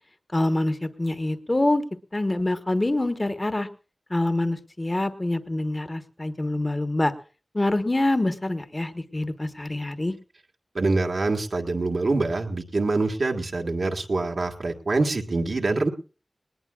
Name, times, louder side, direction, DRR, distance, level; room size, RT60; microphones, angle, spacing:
voice 1, 0.3-1.8 2.1-3.7 4.1-7.1 7.5-10.1, left 1 dB, 35° left, 9 dB, 1.2 m, -25 dB
voice 2, 10.7-15.9, right 3 dB, 85° right, 3 dB, 1.7 m, -25 dB
20.0 x 19.5 x 2.4 m, 0.36 s
wide cardioid pair, 65°, 0 cm